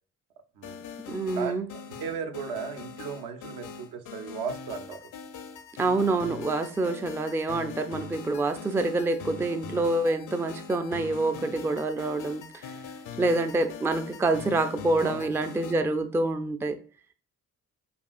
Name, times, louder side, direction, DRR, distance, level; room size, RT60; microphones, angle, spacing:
sound 1, 0.6-15.8, left 6 dB, 50° left, 0.6 m, -42 dB
voice 1, 0.6-0.9 1.3-5.1 15.0-15.3, right 6 dB, 70° right, 6 dB, 0.7 m, -36 dB
voice 2, 1.1-1.7 5.8-12.7 13.2-16.8, right 2 dB, 5° right, 8 dB, 0.3 m, -27 dB
5.3 x 2.4 x 2.3 m, 0.39 s
hypercardioid pair, 50°, 40 cm